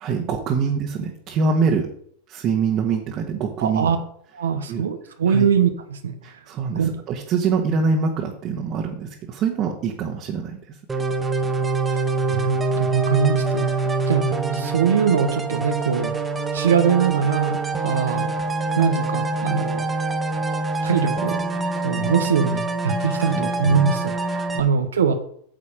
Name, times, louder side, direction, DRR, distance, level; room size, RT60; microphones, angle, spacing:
voice 1, 0.0-1.9 2.3-3.9 4.7-4.8 5.3-5.5 6.2-11.0 22.9-23.5 24.5-24.6, right 5 dB, 40° right, 0 dB, 1.5 m, -24 dB
voice 2, 3.6-4.0 4.3-6.1 6.7-6.9 11.9-16.1 16.5-18.3 18.8-19.8 20.8-21.4 21.8-25.1, right 6 dB, 90° right, 6 dB, 1.0 m, -22 dB
sound 1, 10.9-24.6, right 3 dB, 15° right, 1.4 m, -25 dB
8.9 x 6.9 x 5.1 m, 0.64 s
hypercardioid pair, 105°, 0 cm